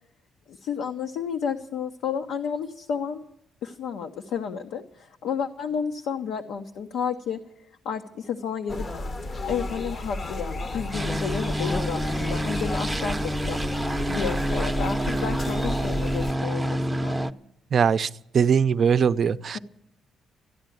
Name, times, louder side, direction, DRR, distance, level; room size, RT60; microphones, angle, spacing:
voice 1, 0.5-3.2 3.6-7.4 7.8-8.9 9.5-13.6 14.1-17.2 19.5-19.6, left 7 dB, 85° left, 4 dB, 0.8 m, -31 dB
sound 1, 8.7-16.3, left 1 dB, 35° left, 0.8 m, -32 dB
sound 2, 10.9-17.3, right 1 dB, 10° right, 0.7 m, -28 dB
voice 2, 17.7-18.1 18.3-19.6, right 7 dB, 50° right, 13 dB, 0.5 m, -21 dB
14.0 x 10.0 x 9.2 m, 0.75 s
cardioid pair, 90°, 0 cm